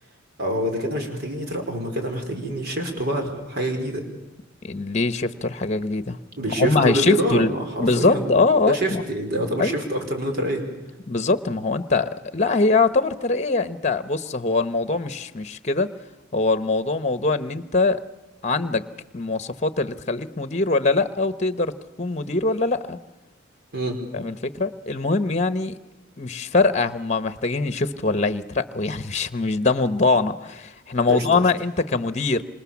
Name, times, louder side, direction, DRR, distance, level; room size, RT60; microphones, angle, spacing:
voice 1, 0.4-4.0 6.4-8.4 8.7-10.6 23.7-24.0 31.1-31.4, right 1 dB, 55° right, 3 dB, 4.8 m, -26 dB
voice 2, 4.6-6.2 6.5-7.5 7.8-9.0 9.6-9.7 11.1-15.9 16.3-18.0 18.4-18.8 19.1-21.7 22.0-23.0 24.1-25.8 26.2-32.4, left 3 dB, 35° left, 11 dB, 1.1 m, -22 dB
26.5 x 26.5 x 7.2 m, 1.0 s
head